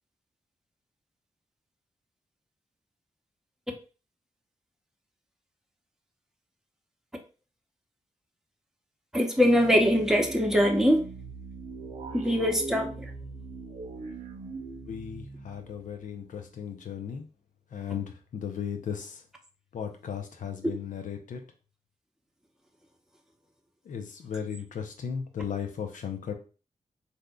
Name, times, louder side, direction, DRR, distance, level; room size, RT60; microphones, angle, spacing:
voice 1, 9.1-11.0 12.1-12.9 20.6-20.7, equal, 5° right, 2 dB, 0.8 m, -22 dB
sound 1, 9.4-16.5, right 3 dB, 65° right, 0.6 m, -41 dB
voice 2, 14.9-17.2 17.7-19.2 19.7-21.4 23.9-26.3, left 7 dB, 80° left, 5 dB, 0.6 m, -36 dB
3.5 x 2.7 x 2.2 m, 0.35 s
cardioid pair, 45°, 13 cm